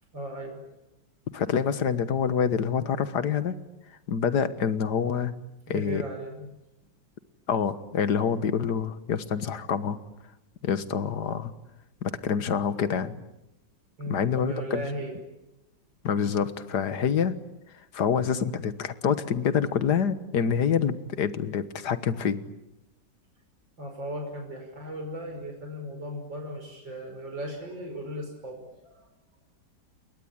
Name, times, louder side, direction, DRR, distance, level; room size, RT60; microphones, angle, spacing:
voice 1, 0.1-0.6 5.7-6.5 14.0-15.2 23.8-29.1, equal, 90° right, 3 dB, 6.2 m, -36 dB
voice 2, 1.3-3.6 4.1-5.4 5.7-6.0 7.5-10.0 10.6-11.5 12.0-13.2 14.1-14.8 16.0-17.3 17.9-22.4, left 7 dB, 65° left, 12 dB, 1.9 m, -26 dB
28.5 x 22.0 x 8.9 m, 0.92 s
omnidirectional pair, 2.0 m